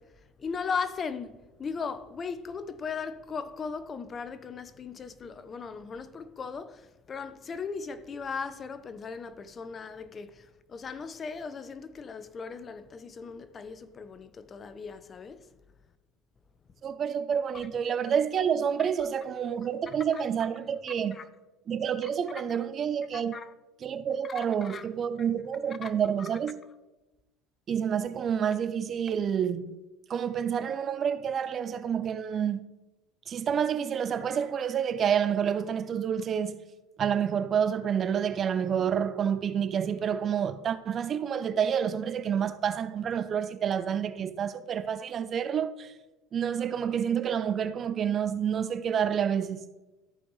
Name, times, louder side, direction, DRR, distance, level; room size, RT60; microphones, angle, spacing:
voice 1, 0.0-15.5 17.5-17.7 18.8-18.9 19.9-20.2 21.1-21.2 22.0-22.6 23.1-23.5 24.2-24.9 25.2-25.3 25.8-25.9 26.2-26.3, left 5 dB, 35° left, 0.6 m, -38 dB
voice 2, 16.8-21.2 21.7-23.4 23.8-26.6 27.7-29.8 30.1-32.6 33.3-36.6 37.0-45.9 46.3-49.7, right 8 dB, 40° right, 0.5 m, -28 dB
14.0 x 5.2 x 3.2 m
hypercardioid pair, 80°, 0 cm